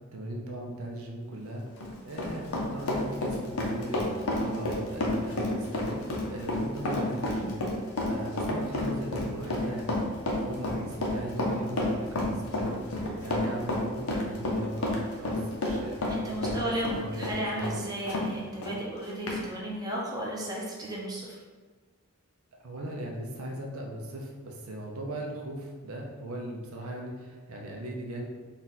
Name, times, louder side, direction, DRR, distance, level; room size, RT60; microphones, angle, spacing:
voice 1, 0.1-1.6 2.0-17.8 22.6-28.2, right 1 dB, 85° right, 0 dB, 0.7 m, -38 dB
Run, 1.6-18.3 18.6-18.7 19.3-19.4, left 1 dB, 90° left, 0.8 m, -30 dB
voice 2, 16.1-21.4, right 1 dB, 20° right, -4 dB, 0.7 m, -34 dB
4.0 x 2.4 x 4.0 m, 1.4 s
head